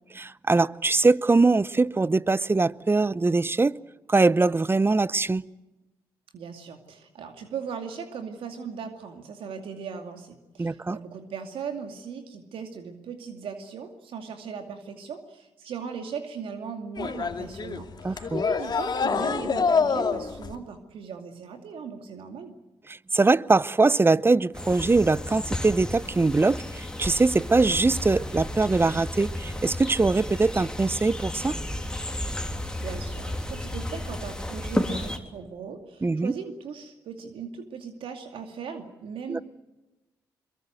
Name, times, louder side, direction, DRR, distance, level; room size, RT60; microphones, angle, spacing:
voice 1, 0.1-3.8 4.1-5.5 10.6-11.0 18.0-18.4 22.9-31.6 36.0-36.3 39.3-39.4, right 3 dB, 25° right, 0.7 m, -22 dB
voice 2, 6.3-22.5 32.8-39.4, right 6 dB, 70° right, 2.5 m, -38 dB
sound 1, 17.0-20.5, left 5 dB, 45° left, 2.4 m, -26 dB
sound 2, 24.5-35.2, left 1 dB, 10° left, 3.2 m, -33 dB
23.0 x 22.5 x 7.9 m
supercardioid pair, 50°, 9 cm